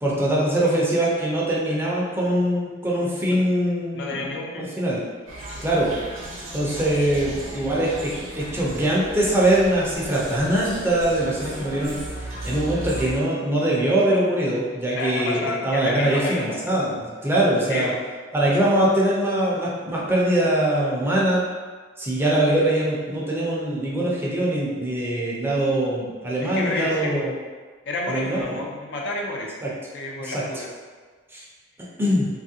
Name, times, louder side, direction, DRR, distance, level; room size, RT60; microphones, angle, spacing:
voice 1, 0.0-5.0 5.6-5.9 6.5-12.0 12.5-17.9 18.3-21.4 22.0-27.3 28.1-28.6 29.6-29.7 30.2-30.3 31.3-31.4 32.0-32.3, right 1 dB, 10° right, -6 dB, 0.5 m, -22 dB
voice 2, 3.9-4.7 14.9-16.8 17.7-18.0 26.4-27.3 27.9-29.5 29.9-30.7, left 2 dB, 65° left, -1 dB, 0.5 m, -30 dB
sound 1, 5.3-13.2, right 1 dB, 80° right, 0.7 m, -35 dB
3.1 x 2.4 x 2.7 m, 1.4 s
head